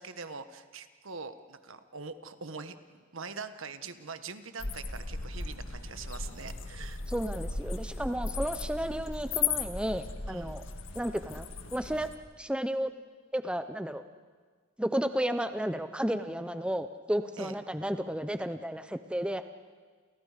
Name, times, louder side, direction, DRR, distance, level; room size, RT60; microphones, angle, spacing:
voice 1, 0.0-2.8 3.1-7.0 8.8-8.9 10.3-10.5 17.4-17.5, right 4 dB, 70° right, 10 dB, 1.4 m, -43 dB
sound 1, 4.6-12.2, left 4 dB, 65° left, 1.8 m, -36 dB
voice 2, 7.1-10.6 10.9-12.1 12.4-12.9 13.3-14.0 14.8-19.4, equal, 5° right, 9 dB, 0.6 m, -32 dB
30.0 x 29.0 x 5.1 m, 1.5 s
head